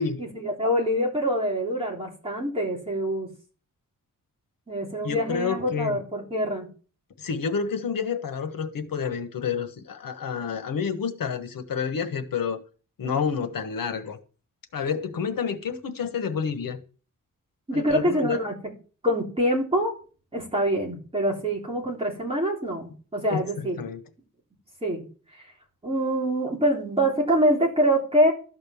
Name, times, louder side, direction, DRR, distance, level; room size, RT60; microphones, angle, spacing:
voice 1, 0.2-3.3 4.7-6.7 17.7-18.5 19.0-20.0 20.3-23.8 24.8-25.0 25.3-25.4 25.8-28.3, equal, 15° right, 3.4 m, -25 dB
voice 2, 5.0-6.0 7.2-12.6 13.0-14.2 14.7-16.8 17.7-18.4 23.3-24.0, left 6 dB, 85° left, 1.3 m, -29 dB
13.0 x 5.4 x 7.0 m
wide cardioid pair, 170°, 33 cm